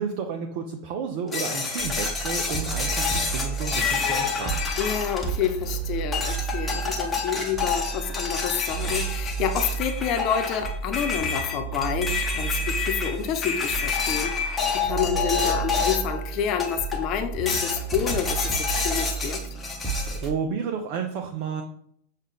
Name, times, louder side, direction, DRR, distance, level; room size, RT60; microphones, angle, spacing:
voice 1, 0.0-4.6 20.1-21.6, right 6 dB, 45° right, 4 dB, 0.4 m, -31 dB
sound 1, 1.3-5.7 6.1-16.2 16.6-17.1 17.5-20.2, left 5 dB, 15° left, 0.9 m, -29 dB
sound 2, 1.8-20.3, right 6 dB, 15° right, 1.0 m, -32 dB
voice 2, 4.8-19.4, left 8 dB, 40° left, 7 dB, 0.4 m, -28 dB
6.3 x 2.4 x 3.5 m, 0.65 s
figure-of-eight pair, 90°, 0 cm